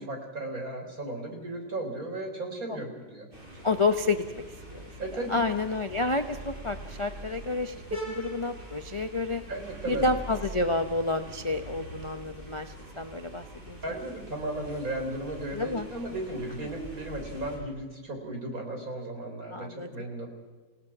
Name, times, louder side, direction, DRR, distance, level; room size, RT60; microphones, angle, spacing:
voice 1, 0.0-3.3 3.5-3.7 5.0-5.4 9.5-10.1 13.8-20.3, right 2 dB, 50° right, 3 dB, 4.4 m, -35 dB
sound 1, 3.3-17.6, right 1 dB, 30° right, 6.0 m, -43 dB
voice 2, 3.6-4.4 4.7-4.8 5.3-7.8 8.1-9.4 9.9-13.8 15.5-15.9 19.5-19.9, left 3 dB, 30° left, 7 dB, 0.6 m, -29 dB
28.5 x 17.5 x 6.0 m, 1.4 s
omnidirectional pair, 1.9 m